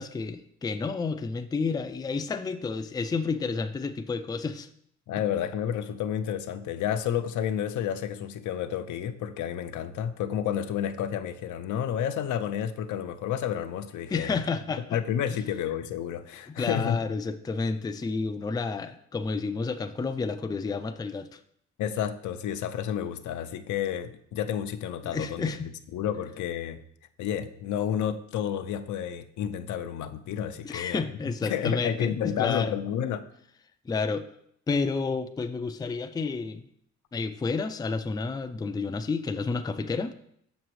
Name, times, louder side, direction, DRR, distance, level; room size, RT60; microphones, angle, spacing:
voice 1, 0.0-4.7 14.1-15.0 16.5-21.4 25.0-25.7 30.6-32.7 33.9-34.3 34.7-36.7 37.1-40.1, left 4 dB, 15° left, 8 dB, 0.4 m, -30 dB
voice 2, 5.1-14.4 14.9-17.0 21.8-25.5 25.9-26.8 27.2-31.0 31.4-33.3, left 9 dB, 75° left, 9 dB, 0.6 m, -30 dB
6.6 x 6.2 x 3.1 m, 0.69 s
cardioid pair, 90°, 30 cm